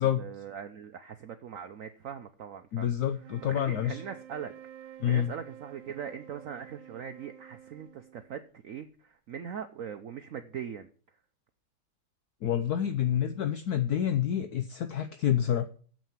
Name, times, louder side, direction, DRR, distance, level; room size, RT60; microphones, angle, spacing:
voice 1, 0.0-2.9 3.4-4.5 4.8-10.9, right 8 dB, 60° right, 8 dB, 0.9 m, -41 dB
voice 2, 2.7-4.0 5.0-5.3 12.4-15.7, left 10 dB, 65° left, 9 dB, 1.2 m, -28 dB
sound 1, 3.1-8.6, right 11 dB, 90° right, 1.5 m, -50 dB
9.2 x 7.7 x 7.2 m, 0.43 s
omnidirectional pair, 1.9 m